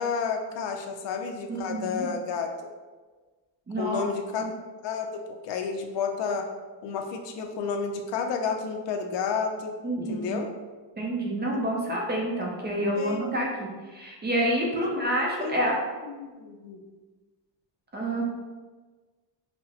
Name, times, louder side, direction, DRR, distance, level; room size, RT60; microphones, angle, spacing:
voice 1, 0.0-2.5 3.8-4.4 4.8-6.5 6.8-9.8 10.1-10.5 12.8-13.4 15.4-15.7 16.1-16.8, left 5 dB, 70° left, 3 dB, 0.6 m, -31 dB
voice 2, 1.5-2.1 3.7-4.1 4.4-4.5 9.8-10.4 11.0-15.8 17.9-18.2, right 1 dB, 25° right, -2 dB, 0.5 m, -28 dB
5.8 x 2.0 x 2.8 m, 1.3 s
cardioid pair, 170°, 45 cm